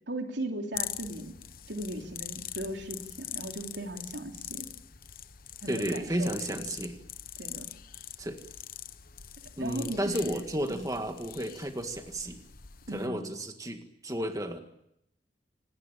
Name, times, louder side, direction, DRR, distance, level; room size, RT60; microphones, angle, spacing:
voice 1, 0.1-1.4 1.7-4.7 5.6-6.6 7.4-7.7 9.6-10.4 10.7-10.9 12.9-13.3, right 1 dB, 80° right, 4 dB, 3.2 m, -37 dB
sound 1, 0.7-13.1, left 11 dB, 55° left, 1.0 m, -43 dB
voice 2, 5.7-7.0 8.2-8.4 9.6-12.4 12.9-14.6, right 1 dB, 20° right, 6 dB, 1.8 m, -33 dB
26.5 x 18.5 x 8.6 m, 0.80 s
head